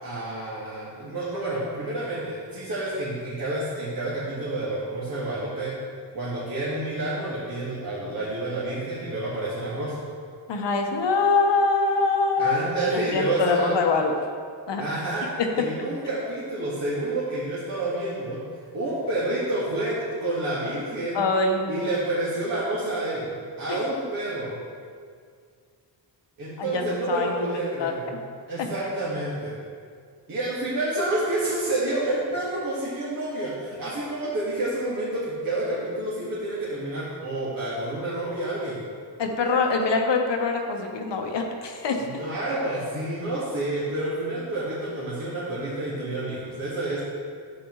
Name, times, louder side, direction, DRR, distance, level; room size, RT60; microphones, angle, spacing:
voice 1, 0.0-5.7 6.1-10.0 12.4-13.7 14.8-15.3 15.6-18.4 18.7-21.2 21.7-23.3 23.6-24.6 26.4-28.0 28.5-29.5 30.3-38.8 42.0-47.0, right 1 dB, 50° right, -9 dB, 1.9 m, -29 dB
voice 2, 10.5-12.6 12.9-14.1 14.7-14.8 15.4-15.5 21.1-21.9 23.7-23.8 26.6-27.5 27.8-27.9 28.6-28.7 39.2-42.1, left 4 dB, 75° left, 3 dB, 1.1 m, -24 dB
9.8 x 7.7 x 3.1 m, 2.1 s
cardioid pair, 90°, 43 cm